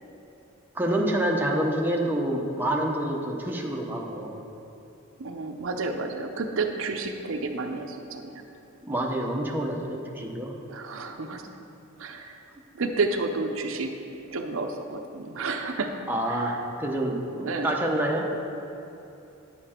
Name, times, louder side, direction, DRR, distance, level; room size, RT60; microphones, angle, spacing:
voice 1, 0.7-4.4 8.8-10.5 16.1-18.3, right 1 dB, 10° right, -1 dB, 0.8 m, -27 dB
voice 2, 5.2-8.4 10.7-11.5 12.0-12.4 12.8-13.9 14.3-15.9 16.3-16.6 17.4-17.7, right 3 dB, 65° right, 5 dB, 0.6 m, -31 dB
9.7 x 6.9 x 4.3 m, 2.9 s
head